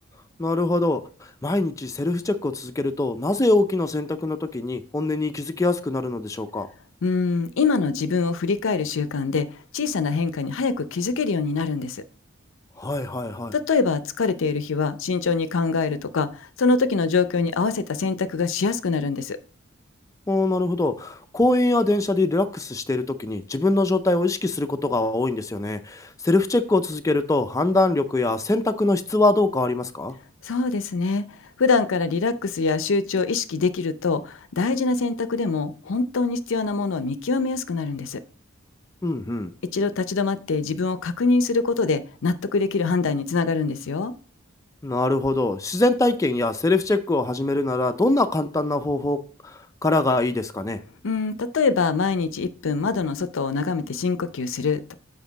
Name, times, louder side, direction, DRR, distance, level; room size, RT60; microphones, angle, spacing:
voice 1, 0.4-1.0 1.4-6.7 12.8-13.5 20.3-30.1 39.0-39.5 44.8-49.2 49.4-50.8, left 2 dB, 15° left, 7 dB, 0.5 m, -23 dB
voice 2, 7.0-9.5 9.7-12.0 13.5-19.4 30.4-31.2 31.6-38.2 39.7-44.1 51.0-54.9, left 4 dB, 65° left, 13 dB, 0.5 m, -24 dB
7.2 x 5.3 x 3.9 m, 0.39 s
head